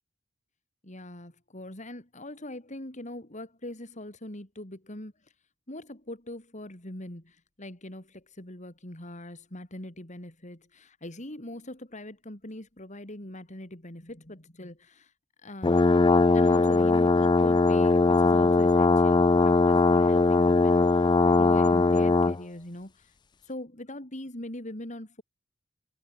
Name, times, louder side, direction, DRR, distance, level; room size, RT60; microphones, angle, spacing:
voice 1, 0.8-5.3 5.7-15.1 15.4-23.1 23.4-25.2, left 1 dB, 40° left, 4.2 m, -42 dB
sound 1, 15.6-22.4, left 3 dB, 25° left, 0.4 m, -21 dB
head